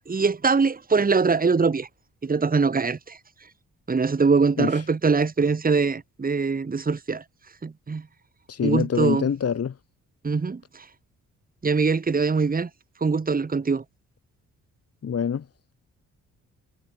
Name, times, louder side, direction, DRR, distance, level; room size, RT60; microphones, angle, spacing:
voice 1, 0.0-1.9 2.2-3.2 3.9-7.2 7.6-8.0 8.6-9.3 10.2-10.8 11.6-12.7 13.0-13.8, right 4 dB, 30° right, 2.0 m, -23 dB
voice 2, 8.5-9.8 15.0-15.5, left 7 dB, 50° left, 2.6 m, -25 dB
cardioid pair, 85°, 31 cm